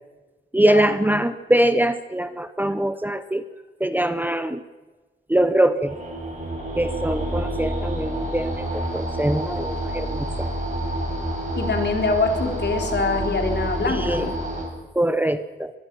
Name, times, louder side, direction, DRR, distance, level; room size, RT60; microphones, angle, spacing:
voice 1, 0.5-3.4 3.8-4.6 5.3-5.9 6.7-10.5 13.9-14.3 14.9-15.7, right 1 dB, 10° right, 10 dB, 0.9 m, -23 dB
sound 1, 5.8-14.6, right 1 dB, 40° right, 6.8 m, -28 dB
voice 2, 11.6-14.3, left 3 dB, 60° left, 3 dB, 3.9 m, -24 dB
24.5 x 21.5 x 6.3 m, 1.3 s
wide cardioid pair, 160°, 20 cm